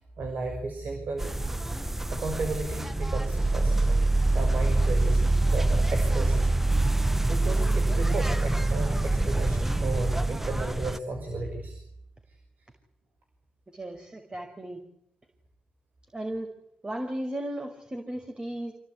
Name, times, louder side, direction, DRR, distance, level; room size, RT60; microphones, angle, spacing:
voice 1, 0.2-1.3 2.1-4.0 4.3-5.2 5.5-6.4 7.3-11.8, right 3 dB, 70° right, 4 dB, 6.1 m, -34 dB
sound 1, 1.2-11.0, right 2 dB, 10° right, 1.1 m, -25 dB
voice 2, 13.7-14.8 16.1-16.5 16.8-18.7, right 1 dB, 30° right, 5 dB, 5.6 m, -35 dB
27.0 x 17.5 x 9.8 m, 0.74 s
supercardioid pair, 50°, 3 cm